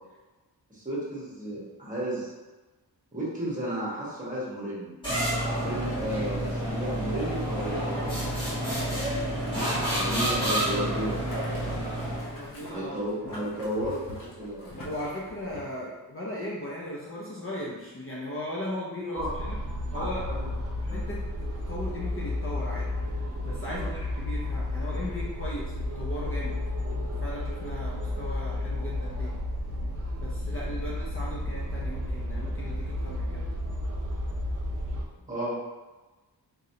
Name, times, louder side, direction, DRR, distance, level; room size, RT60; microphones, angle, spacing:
voice 1, 0.7-2.3 3.1-4.9 5.5-8.7 9.9-11.2 12.7-14.7 19.1-19.3 19.9-20.5 20.9-21.0 23.7-23.9 35.3-35.6, right 1 dB, 20° right, -7 dB, 1.2 m, -33 dB
sound 1, 5.0-12.4, right 1 dB, 10° left, 1.5 m, -29 dB
Boiling, 8.3-15.6, left 1 dB, 50° left, 1.1 m, -45 dB
voice 2, 12.3-13.0 14.8-19.6 19.9-20.2 20.8-22.9 23.4-29.3 30.2-33.5, left 1 dB, 30° left, -6 dB, 0.6 m, -37 dB
sound 2, 19.2-35.0, left 1 dB, 35° right, 0.5 m, -32 dB
3.9 x 3.0 x 2.7 m, 1.2 s
wide cardioid pair, 150°, 41 cm